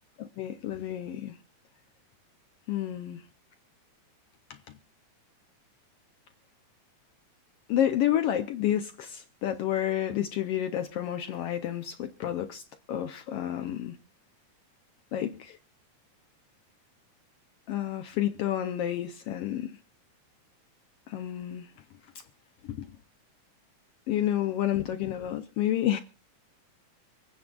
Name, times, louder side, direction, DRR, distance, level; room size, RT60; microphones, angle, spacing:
voice 1, 0.2-1.4 2.7-3.2 4.5-4.6 7.7-14.0 15.1-15.6 17.7-19.8 21.1-21.7 22.6-22.9 24.1-26.0, left 11 dB, 90° left, 1.3 m, -30 dB
26.5 x 9.3 x 2.3 m
omnidirectional pair, 3.5 m